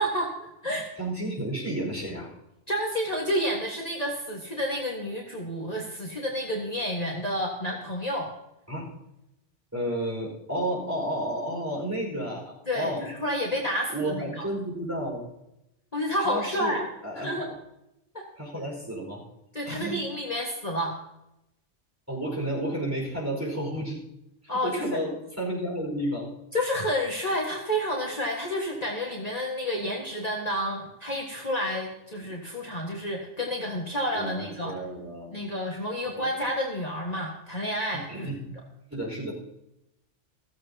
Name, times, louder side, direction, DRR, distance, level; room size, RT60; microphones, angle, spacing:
voice 1, 0.0-0.9 2.7-8.3 12.7-14.5 15.9-16.8 17.2-17.5 18.1-18.3 19.5-20.9 24.5-25.0 26.5-34.7 35.3-38.3, equal, 35° left, -2 dB, 1.8 m, -30 dB
voice 2, 1.0-2.3 8.7-8.9 9.7-13.0 13.9-15.2 16.2-17.5 18.4-19.2 19.6-20.0 22.1-24.0 24.4-26.3 34.1-35.4 36.1-36.3 37.9-38.5 38.9-39.3, right 1 dB, 15° right, -2 dB, 4.9 m, -32 dB
15.5 x 15.0 x 2.9 m, 0.87 s
omnidirectional pair, 1.2 m